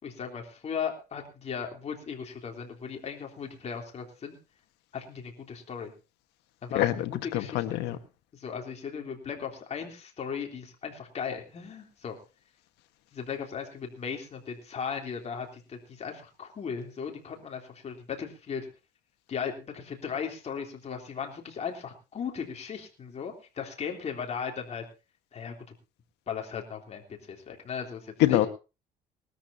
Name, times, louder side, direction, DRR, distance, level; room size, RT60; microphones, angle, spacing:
voice 1, 0.0-4.4 4.9-5.9 6.6-7.6 8.3-12.2 13.1-18.7 19.3-24.8 25.3-25.7 26.3-28.4, left 6 dB, 40° left, 2 dB, 3.4 m, -37 dB
voice 2, 6.7-8.0 28.2-28.5, left 14 dB, 90° left, 9 dB, 1.4 m, -25 dB
20.0 x 13.0 x 2.8 m, 0.30 s
cardioid pair, 110°, 17 cm